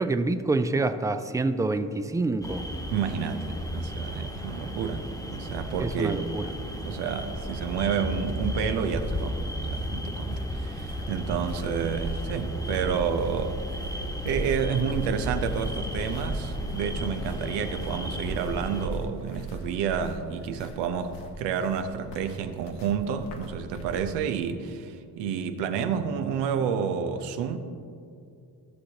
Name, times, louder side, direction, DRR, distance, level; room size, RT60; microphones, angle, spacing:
voice 1, 0.0-2.6 5.8-6.5, right 2 dB, 10° right, 9 dB, 0.4 m, -27 dB
sound 1, 2.4-18.9, equal, 10° left, 1.2 m, -34 dB
voice 2, 2.9-6.3 6.6-13.9 14.2-27.6, right 7 dB, 80° right, 8 dB, 0.7 m, -30 dB
sound 2, 9.1-24.2, right 1 dB, 80° left, 1.2 m, -39 dB
14.0 x 6.4 x 2.9 m, 2.5 s
supercardioid pair, 75°, 42 cm